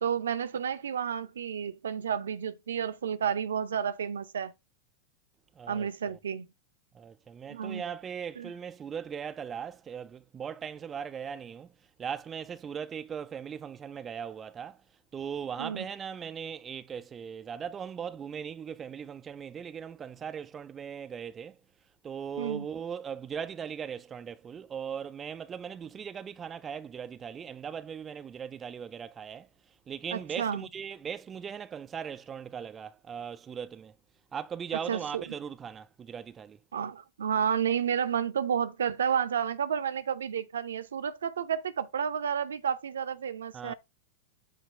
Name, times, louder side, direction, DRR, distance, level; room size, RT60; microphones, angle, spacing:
voice 1, 0.0-4.5 5.7-6.5 7.5-7.8 8.4-8.5 15.6-15.9 22.4-22.7 30.1-30.6 34.9-35.2 36.7-43.7, right 8 dB, 65° right, 0.6 m, -31 dB
voice 2, 5.6-6.2 6.9-11.7 12.0-14.8 15.1-21.6 22.0-33.9 34.3-36.6 43.5-43.7, right 7 dB, 20° right, 0.4 m, -39 dB
8.3 x 2.8 x 5.4 m
figure-of-eight pair, 90°, 0 cm